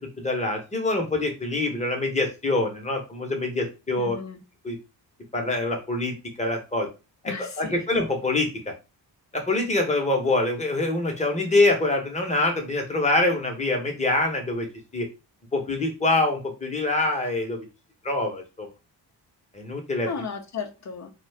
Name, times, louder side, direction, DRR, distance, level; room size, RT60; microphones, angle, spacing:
voice 1, 0.2-4.2 4.6-4.8 5.3-6.1 6.4-6.9 7.4-8.5 9.3-14.7 14.9-15.1 15.5-17.6 18.0-18.7 19.5-20.1, left 2 dB, 15° left, 0.9 m, -25 dB
voice 2, 4.0-4.4 7.3-7.8 20.0-21.1, left 5 dB, 40° left, 0.6 m, -35 dB
2.3 x 2.3 x 3.3 m
cardioid pair, 80°, 45 cm